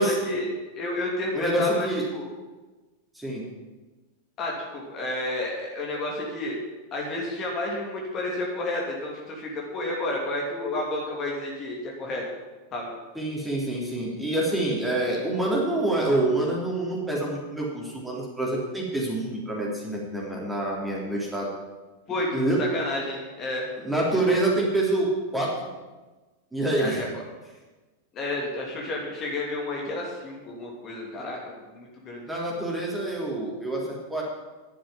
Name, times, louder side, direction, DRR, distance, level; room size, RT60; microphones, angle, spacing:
voice 1, 0.0-1.9 2.1-2.3 4.4-6.6 6.9-12.2 12.7-12.9 22.1-23.7 26.8-27.2 28.1-32.2, left 2 dB, 30° left, -2 dB, 3.0 m, -31 dB
voice 2, 1.3-2.0 3.2-3.5 13.2-21.5 22.3-22.6 23.8-25.1 25.3-25.7 26.5-27.0 32.3-34.2, right 1 dB, 5° right, -3 dB, 3.6 m, -26 dB
11.0 x 7.6 x 9.2 m, 1.2 s
figure-of-eight pair, 90°, 0 cm